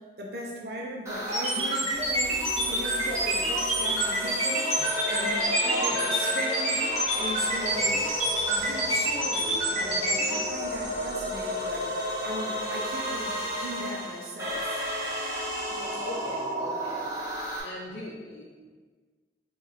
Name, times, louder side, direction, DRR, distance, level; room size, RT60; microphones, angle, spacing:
voice 1, 0.2-4.7 5.1-6.8 7.2-8.0 8.5-14.8, right 1 dB, 65° right, -1 dB, 0.7 m, -38 dB
sound 1, 1.1-17.6, equal, 15° right, 0.7 m, -33 dB
sound 2, 1.3-10.4, right 1 dB, 35° right, 1.3 m, -27 dB
voice 2, 15.7-17.0 17.3-17.4 17.6-18.7, left 1 dB, 75° left, -5 dB, 0.6 m, -41 dB
4.8 x 2.6 x 3.1 m, 1.4 s
head